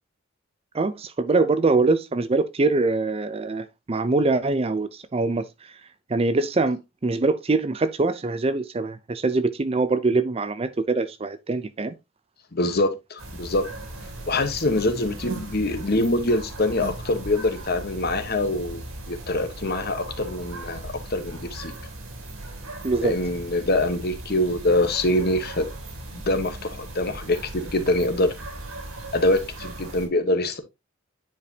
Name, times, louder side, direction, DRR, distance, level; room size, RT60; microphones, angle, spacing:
voice 1, 0.7-5.8 6.1-11.9 22.8-23.2, right 3 dB, 30° right, 0.4 m, -23 dB
voice 2, 12.5-13.6 14.3-21.7 23.0-25.7 26.1-28.3 29.1-30.6, left 2 dB, 50° left, 1.1 m, -24 dB
sound 1, 13.2-30.1, right 2 dB, 90° right, 2.7 m, -38 dB
9.6 x 5.0 x 2.7 m
head